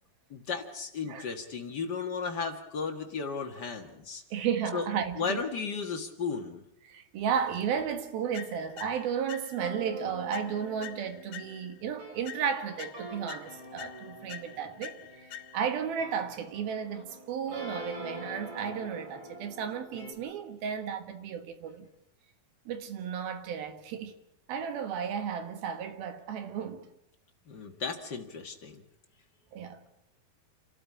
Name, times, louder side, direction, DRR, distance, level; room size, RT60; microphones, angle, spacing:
voice 1, 0.3-4.2 4.7-4.9 5.2-6.6 27.5-28.8, left 5 dB, 50° left, 1.2 m, -35 dB
voice 2, 4.3-5.4 6.8-21.9 22.7-24.1 24.5-26.8 29.5-29.8, right 7 dB, 75° right, 3.4 m, -34 dB
sound 1, 8.3-9.8 10.3-11.9 12.3-15.9, left 12 dB, 80° left, 2.9 m, -47 dB
sound 2, 9.6-20.1, right 1 dB, 30° right, 4.1 m, -45 dB
28.5 x 13.5 x 8.6 m
omnidirectional pair, 4.4 m